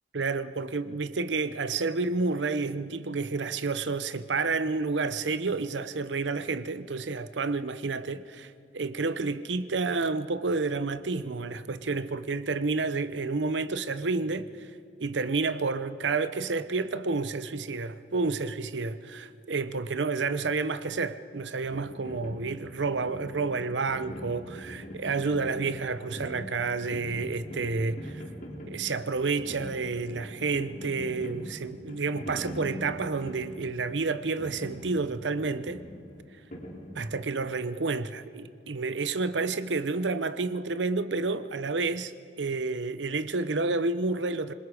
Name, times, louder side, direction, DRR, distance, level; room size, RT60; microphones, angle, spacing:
voice 1, 0.1-14.7 15.0-28.2 28.7-35.8 37.0-44.5, right 4 dB, 90° right, 0.8 m, -30 dB
sound 1, 21.6-37.4, equal, 50° left, 3.1 m, -43 dB
26.5 x 21.0 x 4.9 m
head